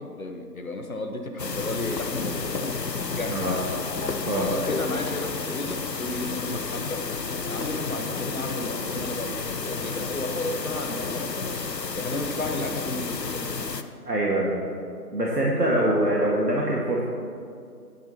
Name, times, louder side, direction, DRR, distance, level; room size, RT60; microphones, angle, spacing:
voice 1, 0.0-2.8 3.1-3.6 4.4-7.1 7.5-11.6 11.9-13.6, left 2 dB, 60° left, 4 dB, 1.2 m, -33 dB
sound 1, 1.4-13.8, left 4 dB, 90° left, 0.8 m, -31 dB
voice 2, 14.0-14.6 15.1-17.0, right 1 dB, 75° right, -4 dB, 1.9 m, -24 dB
13.0 x 11.0 x 2.9 m, 2.3 s
figure-of-eight pair, 165°, 48 cm